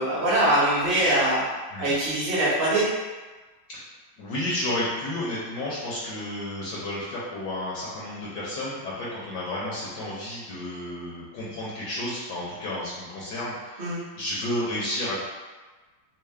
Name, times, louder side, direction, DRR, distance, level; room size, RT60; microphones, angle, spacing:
voice 1, 0.0-1.4 1.8-2.8 13.8-14.0, right 1 dB, 40° right, -8 dB, 0.9 m, -22 dB
voice 2, 4.2-15.2, left 1 dB, 65° left, -7 dB, 1.2 m, -32 dB
4.5 x 2.0 x 3.2 m, 1.3 s
omnidirectional pair, 2.2 m